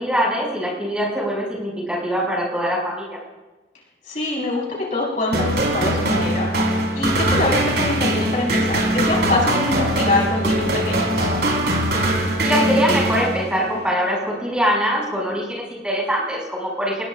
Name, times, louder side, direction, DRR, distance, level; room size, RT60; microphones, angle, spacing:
voice 1, 0.0-3.2 12.4-17.0, equal, 5° right, -3 dB, 6.3 m, -23 dB
voice 2, 4.1-6.5 6.9-11.3, left 2 dB, 45° left, -4 dB, 5.1 m, -24 dB
sound 1, 5.3-13.7, right 1 dB, 70° right, 4.9 m, -21 dB
26.0 x 20.0 x 2.6 m, 1.1 s
head